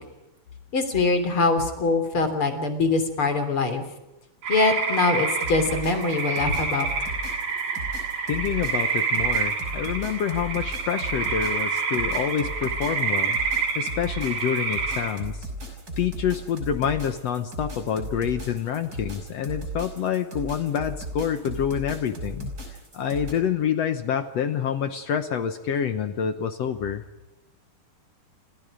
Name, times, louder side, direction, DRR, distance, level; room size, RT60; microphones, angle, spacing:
voice 1, 0.7-3.8 4.5-6.9, left 3 dB, 35° left, 8 dB, 3.9 m, -23 dB
sound 1, 4.4-15.1, right 5 dB, 80° right, 6.2 m, -28 dB
sound 2, 5.3-23.3, right 1 dB, 25° right, 6.1 m, -36 dB
voice 2, 8.3-13.4 13.7-15.5 16.0-22.5 22.9-27.0, left 8 dB, 65° left, 9 dB, 1.6 m, -27 dB
30.0 x 26.5 x 5.1 m, 1.0 s
omnidirectional pair, 4.1 m